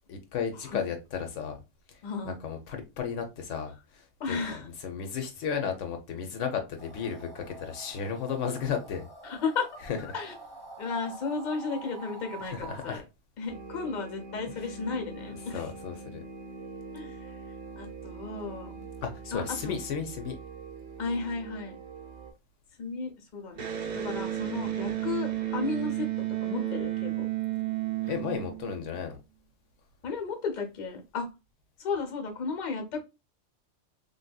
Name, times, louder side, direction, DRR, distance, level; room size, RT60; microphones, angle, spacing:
voice 1, 0.1-1.6 1.9-4.4 4.8-9.1 12.4-13.0 15.5-16.2 19.0-20.4 28.1-29.2, left 7 dB, 75° left, 0.9 m, -34 dB
voice 2, 2.0-2.4 4.2-4.7 9.2-9.7 10.0-10.3 10.8-13.0 13.4-15.7 16.9-17.4 17.8-18.9 19.3-19.7 21.0-21.8 22.8-26.1 26.4-27.3 30.0-31.3 31.8-33.0, left 4 dB, 45° left, 0.8 m, -34 dB
sound 1, 6.8-13.0, right 3 dB, 5° left, 0.8 m, -47 dB
sound 2, 13.5-22.3, right 3 dB, 85° right, 1.2 m, -44 dB
Electric guitar, 23.5-29.0, right 13 dB, 50° right, 0.5 m, -32 dB
3.4 x 2.6 x 2.2 m
omnidirectional pair, 1.3 m